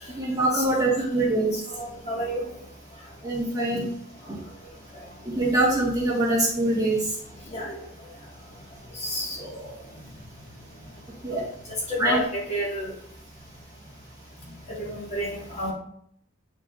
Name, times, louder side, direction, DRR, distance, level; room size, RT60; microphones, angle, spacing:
voice 1, 0.2-1.5 3.2-3.8 4.3-4.4 5.3-7.2 11.2-11.4 12.0-12.2 14.4-14.5, right 2 dB, 20° right, -4 dB, 1.5 m, -23 dB
voice 2, 1.8-2.5 7.5-7.8 9.0-9.7 11.3-11.4 11.9-12.9 14.9-15.7, equal, 35° left, -4 dB, 1.7 m, -30 dB
8.6 x 4.6 x 2.4 m, 0.70 s
head